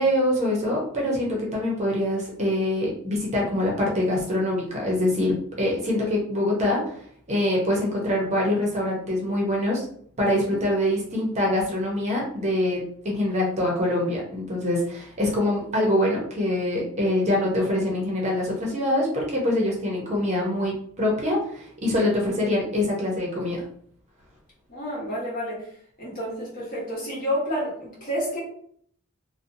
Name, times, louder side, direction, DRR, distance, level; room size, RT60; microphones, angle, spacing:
voice 1, 0.0-6.8 7.3-9.8 10.2-23.6, left 1 dB, 30° right, -3 dB, 0.7 m, -24 dB
voice 2, 24.7-25.7 26.0-28.4, equal, 40° left, -6 dB, 1.1 m, -29 dB
2.6 x 2.1 x 2.6 m, 0.62 s
head